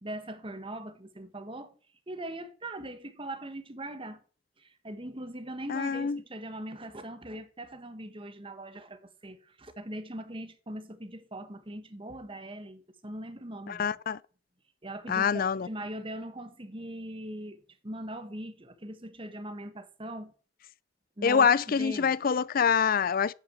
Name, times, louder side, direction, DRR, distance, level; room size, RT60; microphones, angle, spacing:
voice 1, 0.0-1.7 2.1-4.2 4.6-14.0 14.8-20.3 21.2-22.1, right 1 dB, 25° right, 1.2 m, -41 dB
voice 2, 5.7-6.2 13.7-14.2 15.1-15.7 21.2-23.3, left 6 dB, 45° left, 0.4 m, -25 dB
10.5 x 6.1 x 8.1 m
head